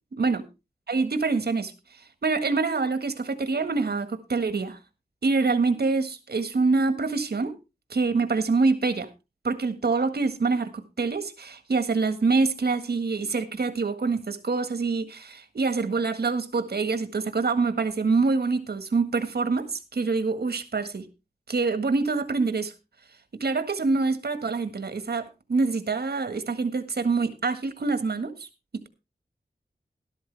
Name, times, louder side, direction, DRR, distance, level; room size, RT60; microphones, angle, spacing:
voice 1, 0.1-0.4 0.9-1.7 2.2-4.8 5.2-7.5 7.9-9.1 9.4-21.1 21.5-22.7 23.4-28.5, right 4 dB, 70° right, 1.7 m, -25 dB
12.5 x 12.5 x 3.4 m
wide cardioid pair, 60°, 17 cm